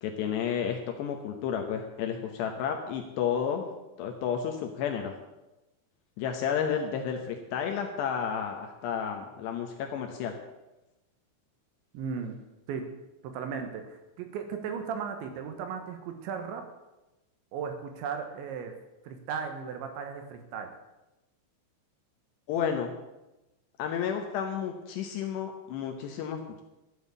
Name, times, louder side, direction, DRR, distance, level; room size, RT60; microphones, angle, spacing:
voice 1, 0.0-3.7 4.0-5.2 6.2-10.4 22.5-22.9 23.8-26.6, left 7 dB, 75° left, 3 dB, 2.7 m, -31 dB
voice 2, 11.9-12.4 12.7-12.8 13.2-16.6 17.5-18.7 19.0-20.7, right 6 dB, 75° right, 6 dB, 3.2 m, -36 dB
13.0 x 7.2 x 8.2 m, 1.0 s
omnidirectional pair, 5.8 m